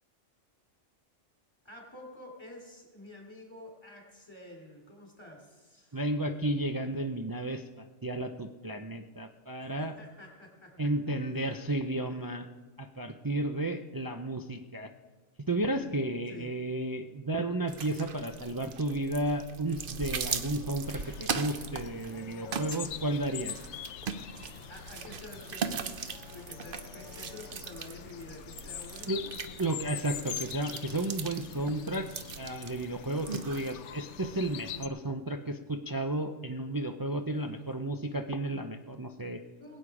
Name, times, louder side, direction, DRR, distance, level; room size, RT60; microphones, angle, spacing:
voice 1, 1.6-6.0 9.6-10.7 16.3-16.5 24.7-29.4 39.6-39.8, left 2 dB, 20° left, 0 dB, 3.3 m, -49 dB
voice 2, 5.9-10.0 10.8-12.5 12.8-14.9 15.5-23.6 29.1-29.2 29.6-32.1 32.4-39.4, right 1 dB, 30° right, 5 dB, 0.4 m, -33 dB
sound 1, 17.7-33.7, right 6 dB, 50° right, 0.9 m, -40 dB
sound 2, 20.8-34.9, left 10 dB, 70° left, 0.9 m, -44 dB
21.0 x 8.7 x 4.9 m, 1.3 s
omnidirectional pair, 1.3 m